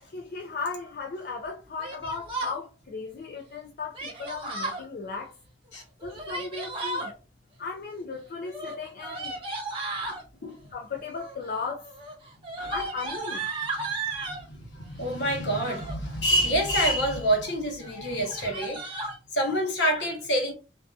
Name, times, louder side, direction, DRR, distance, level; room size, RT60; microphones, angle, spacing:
voice 1, 0.1-5.3 6.0-7.1 7.6-9.4 10.7-11.8 12.7-13.5, left 4 dB, 55° left, 0.4 m, -36 dB
Yell, 1.8-2.6 3.9-4.8 6.0-7.1 8.4-10.2 11.1-11.5 11.8-14.4 15.4-16.0 16.5-17.0 17.4-17.6 17.8-17.9 18.2-19.2, right 3 dB, 30° right, 0.9 m, -35 dB
voice 2, 14.3-19.0 19.3-20.5, equal, 75° left, 0.9 m, -27 dB
2.6 x 2.3 x 2.3 m
head